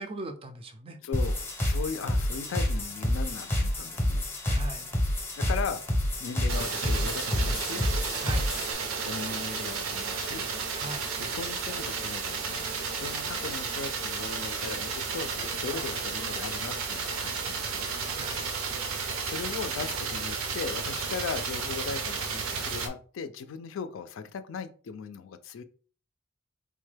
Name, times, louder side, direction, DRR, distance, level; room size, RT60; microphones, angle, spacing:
voice 1, 0.0-1.0 4.5-4.9 8.2-8.5 10.8-11.1 13.3-13.4 15.7-15.8 18.2-18.8, right 2 dB, 25° right, 7 dB, 0.4 m, -40 dB
voice 2, 1.0-4.3 5.4-5.8 6.2-7.9 9.0-10.4 11.2-17.9 19.2-25.6, left 5 dB, 70° left, 11 dB, 0.4 m, -38 dB
sound 1, 1.1-8.7, left 1 dB, 10° left, 0.6 m, -28 dB
sound 2, 6.5-22.9, right 5 dB, 90° right, 0.5 m, -33 dB
3.5 x 2.2 x 3.2 m, 0.41 s
head